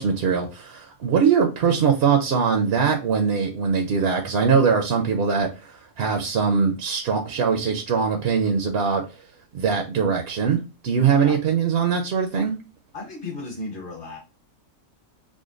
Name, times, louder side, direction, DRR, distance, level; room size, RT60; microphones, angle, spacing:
voice 1, 0.0-9.0 9.5-10.6 10.8-12.5, right 6 dB, 60° right, 4 dB, 0.7 m, -22 dB
voice 2, 12.9-14.2, left 2 dB, 45° left, -1 dB, 1.2 m, -34 dB
5.0 x 2.2 x 2.5 m, 0.30 s
omnidirectional pair, 1.3 m